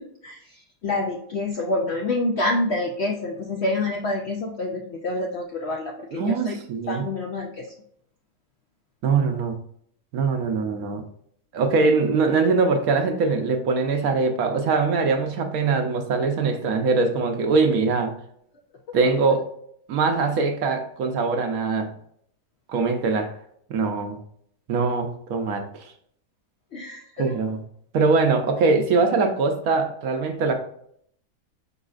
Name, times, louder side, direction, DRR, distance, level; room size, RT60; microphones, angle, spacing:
voice 1, 0.0-6.6 6.9-7.7 18.9-19.0 26.7-27.3, left 2 dB, 70° left, 2 dB, 0.6 m, -27 dB
voice 2, 6.1-7.1 9.0-9.6 10.1-11.0 11.5-18.1 18.9-19.5 19.9-21.9 22.7-23.3 23.7-24.2 24.7-25.7 27.2-27.6 27.9-30.5, right 4 dB, 70° right, 5 dB, 1.1 m, -22 dB
5.3 x 4.0 x 2.4 m, 0.67 s
omnidirectional pair, 1.7 m